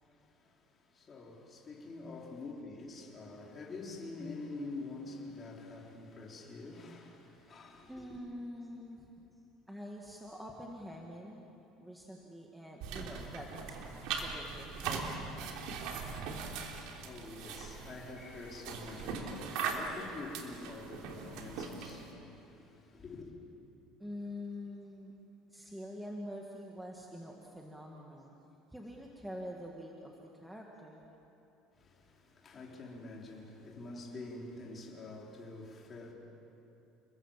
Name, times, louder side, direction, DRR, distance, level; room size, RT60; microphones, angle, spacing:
voice 1, 0.0-8.1 16.7-23.3 31.7-36.1, left 2 dB, 25° left, -1 dB, 4.3 m, -47 dB
voice 2, 7.9-9.3 9.7-11.5 11.8-15.5 24.0-25.1 25.5-28.3 28.7-31.1, equal, 5° right, -1 dB, 1.9 m, -46 dB
sound 1, 12.8-22.1, right 5 dB, 70° right, 3.2 m, -40 dB
29.5 x 22.0 x 7.5 m, 2.9 s
cardioid pair, 150°, 0 cm